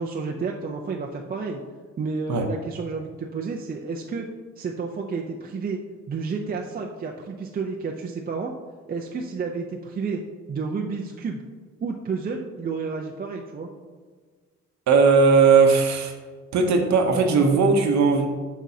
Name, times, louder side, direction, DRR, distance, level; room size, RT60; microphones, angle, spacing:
voice 1, 0.0-1.6 2.0-4.3 4.6-5.8 6.1-8.5 8.9-10.2 10.5-11.4 11.8-13.7, right 4 dB, 30° right, 1 dB, 0.5 m, -30 dB
voice 2, 14.9-16.1 16.5-18.3, right 4 dB, 65° right, 4 dB, 0.8 m, -18 dB
6.1 x 6.0 x 2.7 m, 1.5 s
cardioid pair, 90°, 30 cm